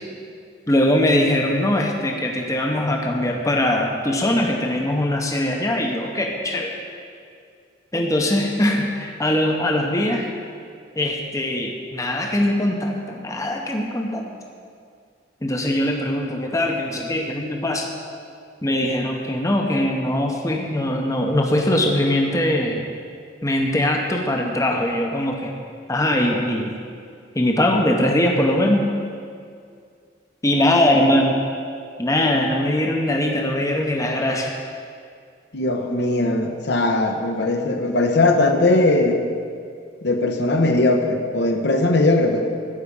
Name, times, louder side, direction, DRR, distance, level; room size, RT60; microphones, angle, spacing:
voice 1, 0.7-6.8 7.9-10.3 11.0-14.4 15.4-17.9 18.6-22.8 23.4-25.5 25.9-26.8 27.3-28.9 30.4-31.4 32.0-34.5, left 1 dB, 15° left, 1 dB, 0.8 m, -21 dB
voice 2, 35.5-39.2 40.0-42.4, left 2 dB, 60° left, 4 dB, 0.9 m, -19 dB
12.0 x 4.9 x 8.4 m, 2.2 s
head